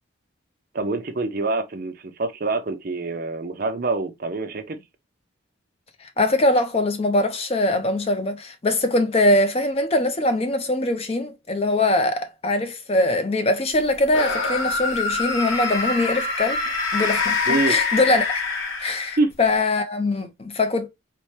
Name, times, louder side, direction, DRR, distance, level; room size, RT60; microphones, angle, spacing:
voice 1, 0.7-4.8 17.5-17.8 19.2-19.3, right 3 dB, 45° right, 0.5 m, -25 dB
voice 2, 6.0-16.6 16.9-18.4 18.8-20.9, left 2 dB, 30° left, 0.5 m, -22 dB
sound 1, 14.1-19.3, left 4 dB, 75° left, 1.1 m, -25 dB
4.2 x 2.1 x 3.0 m
head